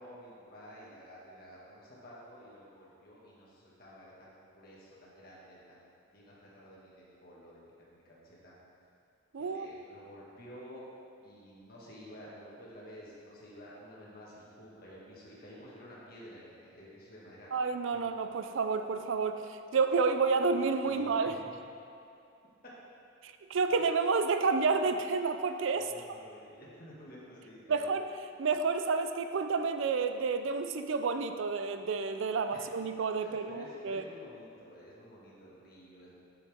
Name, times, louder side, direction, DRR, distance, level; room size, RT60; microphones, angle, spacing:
voice 1, 0.0-8.5 9.4-10.8 11.2-17.5 17.9-18.1 20.9-21.4 23.7-23.8 25.7-28.0 32.5-32.7 33.2-36.2, equal, 45° left, -6 dB, 1.8 m, -52 dB
voice 2, 9.3-9.7 17.5-21.3 23.2-25.9 27.7-28.0 28.4-34.0, right 4 dB, 75° right, 8 dB, 0.4 m, -30 dB
8.7 x 7.1 x 3.5 m, 2.6 s
head